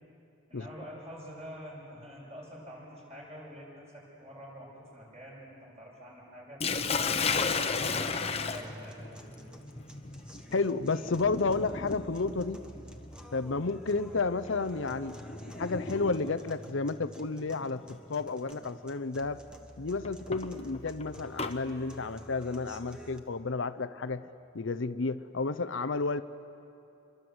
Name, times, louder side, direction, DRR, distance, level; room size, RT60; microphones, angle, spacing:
voice 1, 0.5-6.6 7.2-9.5 13.5-13.8, equal, 30° right, -3 dB, 7.8 m, -47 dB
Sink (filling or washing), 6.6-16.5 17.7-18.0 18.5-18.6 20.0-21.6, left 5 dB, 30° left, 1.0 m, -35 dB
sound 1, 7.2-23.2, equal, 5° right, 1.3 m, -49 dB
voice 2, 10.5-12.6 13.3-15.2 15.6-17.8 18.1-19.4 19.8-24.3 24.5-26.2, left 3 dB, 65° left, 13 dB, 0.7 m, -31 dB
27.5 x 23.5 x 8.0 m, 2.7 s
head